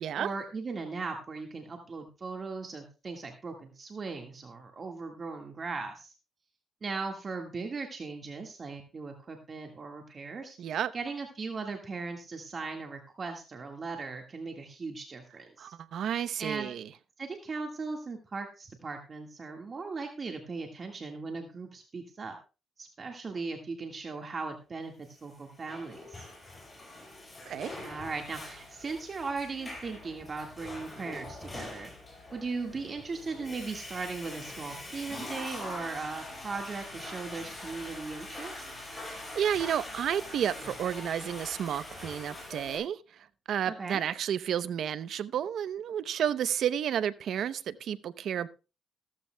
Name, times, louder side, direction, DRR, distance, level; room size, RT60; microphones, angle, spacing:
voice 1, 0.1-6.1 6.8-10.6 10.9-15.7 16.4-16.7 17.2-22.3 22.8-26.3 27.8-31.9 32.3-38.7 43.6-44.0, right 4 dB, 40° right, 1.7 m, -38 dB
voice 2, 10.6-10.9 15.6-16.9 27.5-27.8 39.1-48.5, right 9 dB, 70° right, 0.7 m, -31 dB
Water / Toilet flush, 25.3-42.8, left 1 dB, 20° left, 7.4 m, -43 dB
15.0 x 14.0 x 2.2 m
cardioid pair, 90°, 0 cm